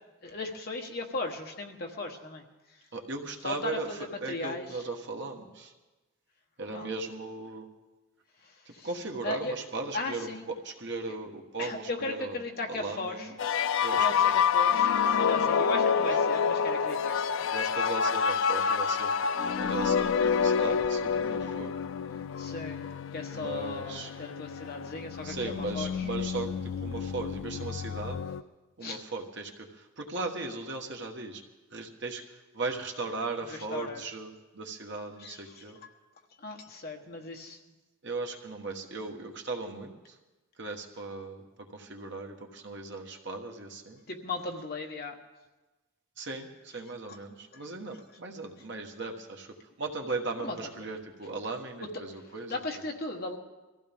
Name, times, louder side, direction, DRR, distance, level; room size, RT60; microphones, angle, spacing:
voice 1, 0.2-2.4 3.4-4.7 6.7-6.9 8.4-8.9 9.2-9.5 9.9-10.4 11.6-13.3 13.9-17.4 22.4-25.9 28.8-29.0 33.5-34.0 35.2-35.6 36.4-37.6 44.1-45.2 47.1-47.2 47.5-47.6 50.4-50.9 51.9-52.0 52.5-53.4, left 2 dB, 45° left, 2 dB, 1.3 m, -37 dB
voice 2, 2.9-5.7 6.6-7.6 8.7-12.4 12.6-13.4 13.8-14.3 15.9-16.1 17.5-21.7 23.3-24.1 25.2-28.2 28.8-31.4 31.7-35.8 38.0-40.2 40.6-44.0 46.2-52.6, right 3 dB, 55° right, 2 dB, 1.4 m, -38 dB
sound 1, 13.4-28.4, left 6 dB, 65° left, 0.4 m, -28 dB
23.0 x 15.0 x 3.6 m, 1.1 s
head